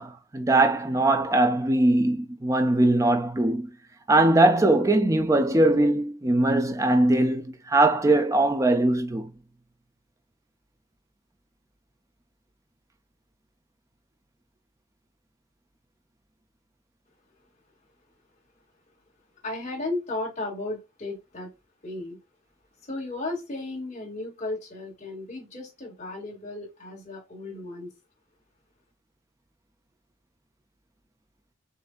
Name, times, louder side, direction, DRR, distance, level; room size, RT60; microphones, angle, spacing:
voice 1, 0.0-3.7 4.1-9.3, right 2 dB, 15° right, 0.4 m, -21 dB
voice 2, 19.4-21.5 21.8-22.2 22.8-27.9, left 2 dB, 35° left, 2.2 m, -34 dB
6.7 x 2.7 x 2.4 m
head